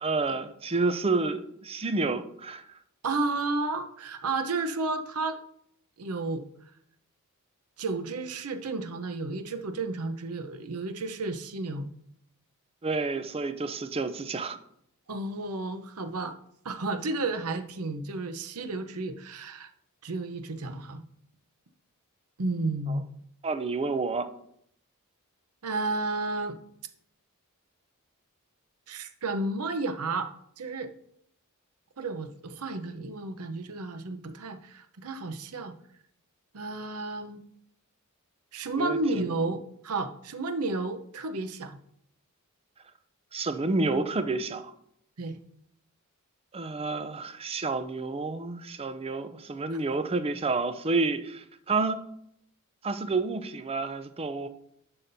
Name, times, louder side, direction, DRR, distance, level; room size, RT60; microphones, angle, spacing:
voice 1, 0.0-2.6 12.8-14.6 23.4-24.3 38.8-39.3 43.3-44.7 46.5-52.0 52.8-54.5, right 3 dB, 25° right, 10 dB, 0.5 m, -29 dB
voice 2, 3.0-5.4 6.0-6.4 7.8-11.9 15.1-16.3 16.6-19.7 20.0-21.0 22.4-23.1 25.6-26.6 28.9-30.3 30.6-30.9 32.0-35.7 36.5-37.4 38.5-41.8 45.2-45.4 49.7-49.8, right 3 dB, 85° right, 8 dB, 0.8 m, -32 dB
11.0 x 5.7 x 2.7 m, 0.72 s
head